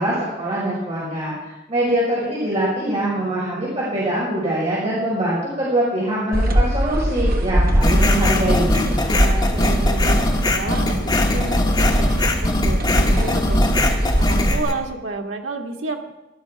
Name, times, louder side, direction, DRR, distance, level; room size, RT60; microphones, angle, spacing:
voice 1, 0.0-8.9, right 1 dB, 35° right, -7 dB, 5.3 m, -23 dB
sound 1, 6.3-14.6, equal, 50° right, 1.4 m, -21 dB
sound 2, 7.8-14.7, left 1 dB, 25° left, 1.6 m, -21 dB
voice 2, 9.1-16.1, right 3 dB, 80° right, 2 dB, 1.8 m, -30 dB
17.0 x 12.0 x 4.7 m, 1.0 s
head